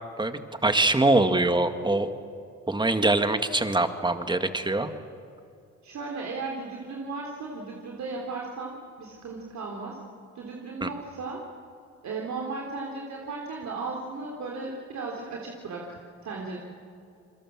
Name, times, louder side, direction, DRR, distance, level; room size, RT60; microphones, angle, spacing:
voice 1, 0.2-2.1 2.7-4.9 10.8-10.9, right 2 dB, 15° right, 8 dB, 1.9 m, -23 dB
voice 2, 5.8-10.0 10.4-11.4 12.0-16.6, right 3 dB, 65° right, -1 dB, 3.6 m, -36 dB
28.5 x 22.5 x 7.5 m, 2.5 s
cardioid pair, 90°, 30 cm